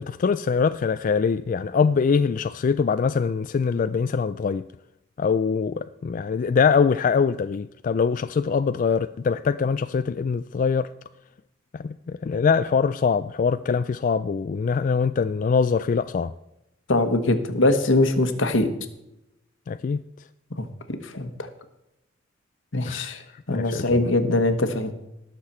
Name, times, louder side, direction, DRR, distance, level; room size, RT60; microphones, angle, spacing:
voice 1, 0.0-4.7 5.2-10.9 11.7-16.3 19.7-20.0 22.8-24.0, left 5 dB, 40° left, 0.3 m, -23 dB
voice 2, 16.9-18.7 20.9-21.3 22.7-23.2 23.5-24.9, left 2 dB, 75° left, 1.3 m, -22 dB
20.0 x 6.8 x 4.3 m
head